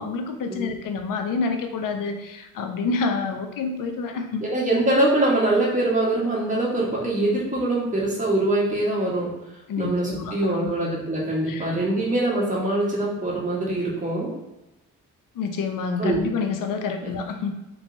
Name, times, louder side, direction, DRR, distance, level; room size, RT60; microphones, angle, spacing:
voice 1, 0.0-4.5 9.7-10.4 10.6-10.7 11.5-11.8 15.3-17.6, left 4 dB, 60° left, 5 dB, 0.6 m, -28 dB
voice 2, 4.4-9.3 9.8-14.3 16.0-16.2 17.0-17.1, right 2 dB, 20° right, -5 dB, 1.3 m, -23 dB
3.0 x 2.6 x 2.6 m, 0.99 s
supercardioid pair, 55°, 37 cm